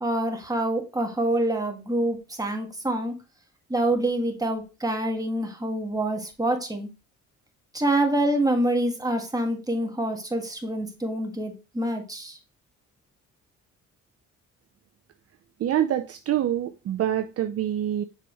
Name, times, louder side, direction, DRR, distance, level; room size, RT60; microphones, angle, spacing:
voice 1, 0.0-3.1 3.7-6.9 7.7-12.4, right 1 dB, 10° right, 1.8 m, -26 dB
voice 2, 15.6-18.0, right 11 dB, 50° right, 0.6 m, -26 dB
6.6 x 5.0 x 3.0 m
cardioid pair, 90°, 30 cm